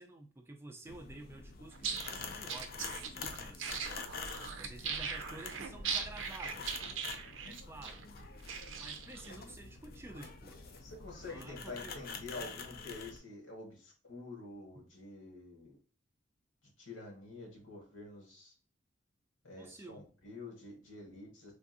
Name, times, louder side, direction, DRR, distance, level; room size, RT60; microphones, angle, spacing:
voice 1, 0.0-3.8 4.6-6.9 7.4-8.0 8.8-10.7 11.3-12.0 19.6-20.0, right 2 dB, 15° right, 4 dB, 0.4 m, -51 dB
sound 1, 0.9-13.2, left 5 dB, 50° left, 0.4 m, -47 dB
sound 2, 1.7-9.3, right 6 dB, 85° right, 0.5 m, -40 dB
voice 2, 10.8-15.8 16.8-18.5 19.4-21.5, left 3 dB, 85° left, -1 dB, 1.6 m, -48 dB
3.4 x 2.5 x 2.6 m, 0.40 s
head